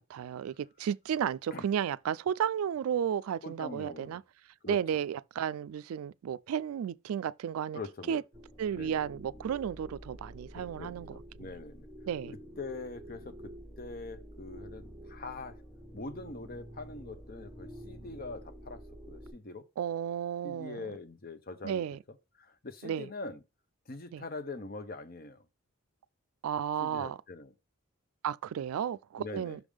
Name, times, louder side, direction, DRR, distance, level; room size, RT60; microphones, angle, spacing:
voice 1, 0.0-4.2 4.7-7.8 8.1-8.2 8.6-11.5 12.1-12.3 19.8-20.8 21.6-22.0 22.8-23.1 24.1-24.2 26.4-27.2 28.2-29.6, right 8 dB, 85° right, 0.3 m, -33 dB
voice 2, 3.4-4.2 4.6-4.8 7.7-8.2 8.7-9.0 10.5-11.9 12.6-15.6 15.9-19.7 20.4-21.8 22.4-23.4 23.9-25.4 26.8-27.5 29.2-29.6, left 3 dB, 45° left, 0.7 m, -43 dB
sound 1, 8.3-19.3, equal, 5° left, 1.1 m, -48 dB
6.2 x 3.5 x 4.9 m
head